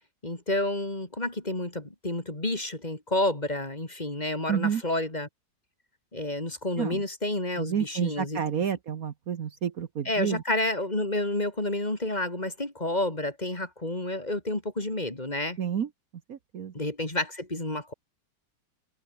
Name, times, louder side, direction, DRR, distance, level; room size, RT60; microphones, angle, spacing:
voice 1, 0.2-5.3 6.1-8.4 10.0-15.6 16.7-17.9, left 1 dB, 25° left, 3.1 m, -30 dB
voice 2, 4.5-4.8 6.8-7.0 7.6-10.4 15.6-15.9 16.3-16.7, right 8 dB, 55° right, 1.5 m, -30 dB
omnidirectional pair, 1.9 m